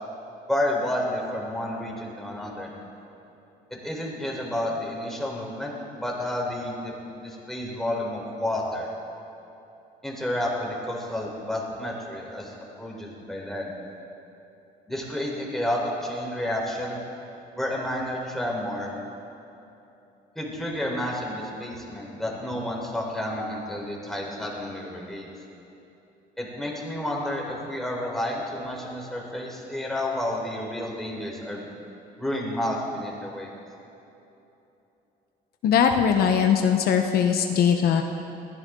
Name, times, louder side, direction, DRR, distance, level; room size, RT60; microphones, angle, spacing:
voice 1, 0.5-2.7 3.8-8.9 10.0-12.5 12.8-13.7 14.9-17.0 17.5-18.9 20.4-25.3 26.4-31.7 32.2-33.5, left 1 dB, ahead, -3 dB, 4.1 m, -30 dB
voice 2, 35.6-38.0, left 7 dB, 65° left, 4 dB, 1.0 m, -20 dB
21.5 x 16.0 x 3.8 m, 2.9 s
cardioid pair, 110°, 17 cm